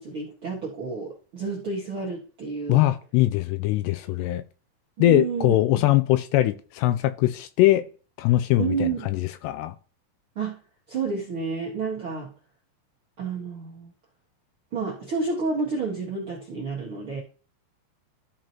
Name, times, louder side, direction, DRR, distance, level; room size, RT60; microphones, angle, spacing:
voice 1, 0.0-2.8 5.0-5.8 8.6-9.0 10.3-10.6 10.9-12.3 13.2-13.9 14.7-17.2, right 4 dB, 60° right, 1.4 m, -30 dB
voice 2, 2.7-4.4 5.0-7.8 8.2-9.7, left 15 dB, 85° left, 2.5 m, -22 dB
13.0 x 4.9 x 3.0 m
omnidirectional pair, 5.0 m